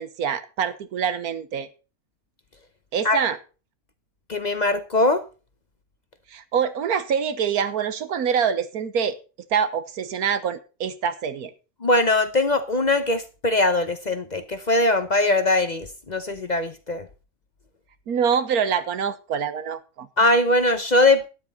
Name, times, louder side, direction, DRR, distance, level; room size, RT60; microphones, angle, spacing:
voice 1, 0.0-1.7 2.9-3.4 6.3-9.2 9.5-11.5 18.1-20.1, right 7 dB, 90° right, 1.6 m, -25 dB
voice 2, 4.3-5.2 11.8-17.1 20.2-21.3, left 2 dB, 35° left, 0.8 m, -21 dB
13.0 x 9.6 x 4.1 m
omnidirectional pair, 1.5 m